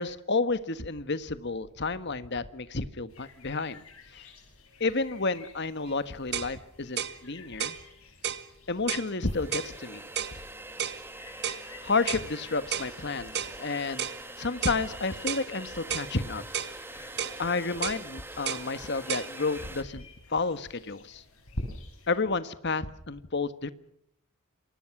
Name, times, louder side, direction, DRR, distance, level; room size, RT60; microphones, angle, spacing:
voice 1, 0.0-3.8 4.1-4.3 4.8-7.8 8.7-10.0 11.8-14.1 14.4-16.4 16.9-17.1 17.4-21.2 22.1-23.7, left 3 dB, 50° left, 12 dB, 1.5 m, -31 dB
sound 1, 3.1-22.2, left 1 dB, 75° left, 7.9 m, -49 dB
sound 2, 5.9-6.0 6.3-6.5 7.0-7.2 7.6-7.8 8.2-8.5 8.9-9.1 9.5-9.7 10.2-10.4 10.8-11.0 11.4-11.6 12.1-12.3 12.7-12.9 13.3-13.6 14.0-14.2 14.6-14.8 15.3-15.5 15.9-16.1 16.5-16.8 17.2-17.4 17.8-18.0 18.5-18.7 19.1-19.3, right 8 dB, 50° right, 1.5 m, -32 dB
sound 3, 8.5-8.6 9.1-19.8, right 2 dB, 10° right, 2.1 m, -44 dB
28.0 x 24.0 x 6.1 m, 0.72 s
head